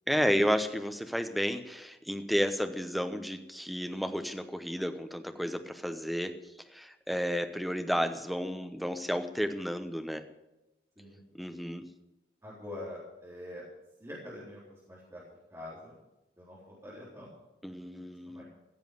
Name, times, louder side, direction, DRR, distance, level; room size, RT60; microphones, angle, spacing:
voice 1, 0.1-6.4 6.7-10.2 11.3-11.9 17.6-18.4, equal, ahead, 7 dB, 0.9 m, -32 dB
voice 2, 12.4-13.6 14.0-15.2 15.5-16.0 16.4-17.3 17.7-18.4, left 1 dB, 15° right, -8 dB, 3.9 m, -45 dB
16.0 x 7.3 x 9.4 m, 0.98 s
head